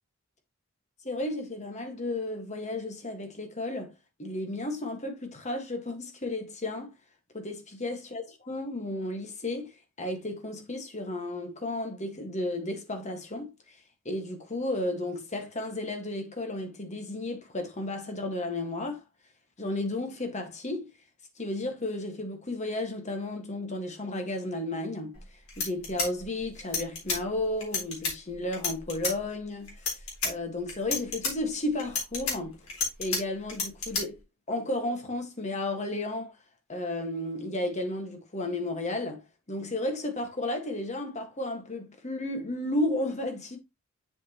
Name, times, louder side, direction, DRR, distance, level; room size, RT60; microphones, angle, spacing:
voice 1, 1.0-3.9 4.2-6.9 7.3-19.0 19.6-20.9 21.4-32.6 33.0-34.2 34.5-36.4 36.7-43.6, left 1 dB, 30° left, 1.7 m, -33 dB
sound 1, 25.1-25.2 25.5-27.2 27.6-28.1 28.5-29.1 29.7-30.3 30.7-31.3 31.8-33.2 33.5-34.0, left 4 dB, 75° left, 3.9 m, -30 dB
7.4 x 6.1 x 3.0 m
head